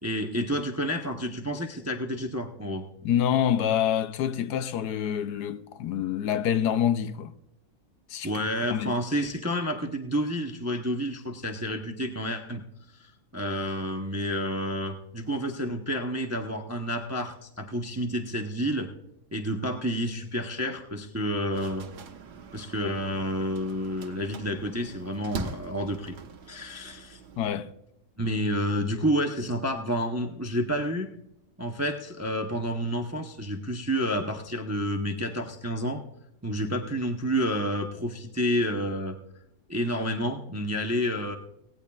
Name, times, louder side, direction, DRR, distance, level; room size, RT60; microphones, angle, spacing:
voice 1, 0.0-2.9 8.2-12.6 13.0-18.9 19.3-21.9 22.5-26.2 26.5-27.2 28.2-31.1 31.6-36.0 36.4-39.2 39.7-41.4, equal, 15° right, 0.5 m, -29 dB
voice 2, 3.0-7.3 8.1-8.3 8.7-8.9 27.4-27.7, left 9 dB, 80° left, 1.2 m, -26 dB
sound 1, 21.5-27.5, right 5 dB, 80° right, 1.5 m, -42 dB
17.5 x 17.5 x 2.4 m
omnidirectional pair, 1.7 m